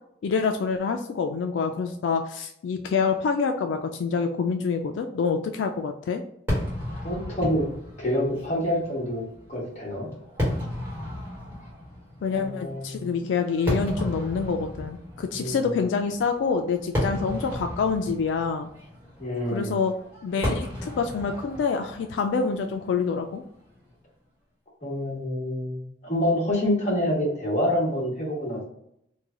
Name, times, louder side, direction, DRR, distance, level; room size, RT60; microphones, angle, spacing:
voice 1, 0.2-6.2 12.2-18.7 19.5-19.9 20.2-23.4, left 5 dB, 85° left, 6 dB, 0.3 m, -26 dB
Fireworks, 6.5-23.8, left 1 dB, 10° right, 1.2 m, -34 dB
voice 2, 7.0-7.7 8.0-9.2 9.5-10.1 12.3-13.1 15.3-15.7 19.2-19.8 24.8-28.6, left 1 dB, 40° left, -4 dB, 1.3 m, -27 dB
3.1 x 2.2 x 3.6 m, 0.74 s
head